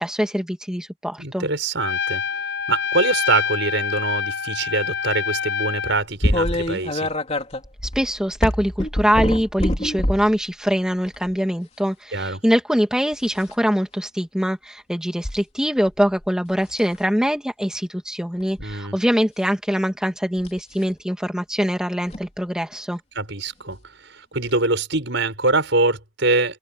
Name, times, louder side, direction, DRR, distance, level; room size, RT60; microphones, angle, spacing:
voice 1, 0.0-1.5 8.0-23.0, equal, 5° right, 2.1 m, -23 dB
voice 2, 1.2-2.2 2.7-7.1 12.1-12.4 18.6-19.0 23.1-23.8 24.0-26.6, right 3 dB, 60° right, 6.5 m, -23 dB
Trumpet, 1.8-6.0, left 7 dB, 55° left, 7.3 m, -26 dB
sound 1, 6.2-10.3 11.1-11.3 13.1-13.5 15.2-15.4 15.9-16.3 16.7-17.0 18.4-18.7 20.4-20.6 22.1-22.2 23.7-23.8 24.5-24.6, left 1 dB, 30° left, 3.6 m, -25 dB
open air
head